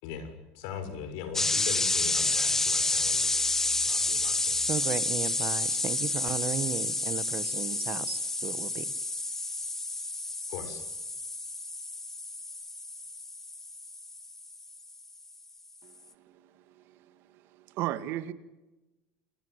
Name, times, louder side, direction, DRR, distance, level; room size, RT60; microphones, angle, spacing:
voice 1, 0.0-4.7 10.5-10.8, left 7 dB, 80° left, 6.5 m, -41 dB
sound 1, 1.3-14.9, left 2 dB, 10° left, 1.5 m, -30 dB
voice 2, 4.7-8.9, right 9 dB, 35° right, 1.4 m, -35 dB
voice 3, 17.5-18.3, right 13 dB, 60° right, 2.1 m, -35 dB
29.0 x 21.0 x 8.1 m
cardioid pair, 145°, 4 cm